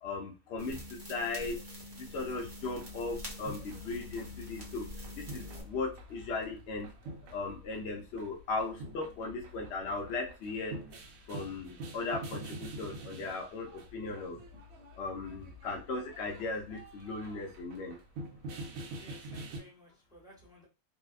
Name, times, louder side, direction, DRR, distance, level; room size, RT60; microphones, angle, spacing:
voice 1, 0.0-1.6 2.0-4.9 5.2-6.9 7.3-10.7 11.3-14.4 15.0-18.0, left 3 dB, 65° left, 1 dB, 0.7 m, -37 dB
sound 1, 0.6-5.6, equal, 40° right, 0.8 m, -46 dB
sound 2, 2.2-19.6, right 1 dB, 75° right, 1.0 m, -46 dB
voice 2, 18.9-20.7, equal, 5° right, -5 dB, 0.7 m, -56 dB
2.7 x 2.1 x 2.3 m, 0.31 s
omnidirectional pair, 1.5 m